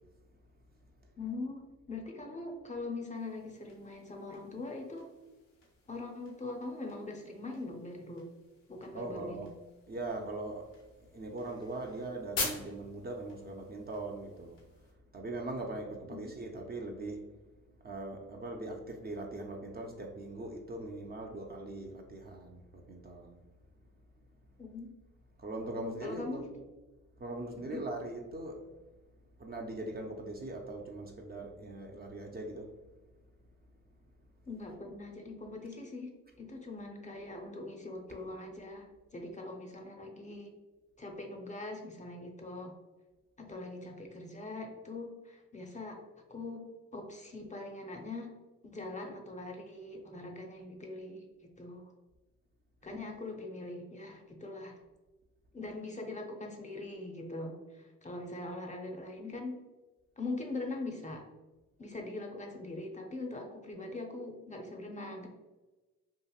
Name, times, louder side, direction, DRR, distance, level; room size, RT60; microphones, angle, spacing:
voice 1, 1.2-5.1 5.9-8.3 8.7-9.5 16.1-16.3 24.6-24.9 25.8-26.4 27.5-27.9 34.5-40.5 41.0-42.8 43.4-46.0 46.3-46.7 46.9-48.3 48.7-51.9 52.8-54.8 55.5-59.6 60.2-61.3 61.8-65.3, left 2 dB, 25° left, 2 dB, 0.5 m, -42 dB
ems Smartphone, 3.1-14.9, left 3 dB, 90° left, 0.8 m, -46 dB
voice 2, 8.9-9.5 9.9-10.7 11.0-14.6 15.1-17.3 17.8-23.4 25.4-26.4 27.2-28.6 29.4-32.7, right 2 dB, 30° right, 1 dB, 0.4 m, -41 dB
2.9 x 2.5 x 2.3 m, 1.2 s
cardioid pair, 65°, 32 cm